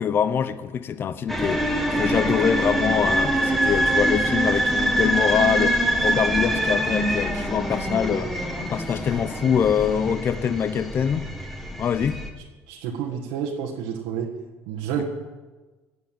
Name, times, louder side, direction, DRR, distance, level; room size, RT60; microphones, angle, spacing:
voice 1, 0.0-1.7 2.0-8.3 8.6-11.3 11.8-12.2, left 8 dB, 40° left, 0.8 m, -24 dB
sound 1, 1.3-12.3, right 1 dB, ahead, 1.9 m, -24 dB
voice 2, 12.7-14.3 14.7-15.0, right 8 dB, 85° right, 1.8 m, -29 dB
16.5 x 8.1 x 9.0 m
cardioid pair, 125°, 6 cm